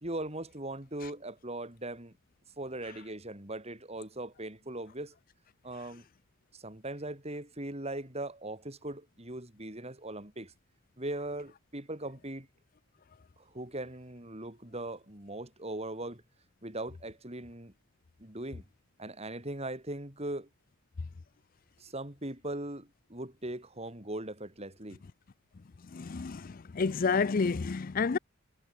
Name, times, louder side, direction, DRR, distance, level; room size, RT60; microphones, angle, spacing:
voice 1, 0.0-2.1 2.6-5.2 5.6-6.0 6.5-10.5 11.0-12.5 13.4-16.2 16.6-17.7 18.2-18.6 19.0-20.5 21.8-25.0, right 1 dB, 30° right, 3.8 m, -39 dB
voice 2, 25.9-28.2, left 4 dB, 40° left, 0.5 m, -29 dB
head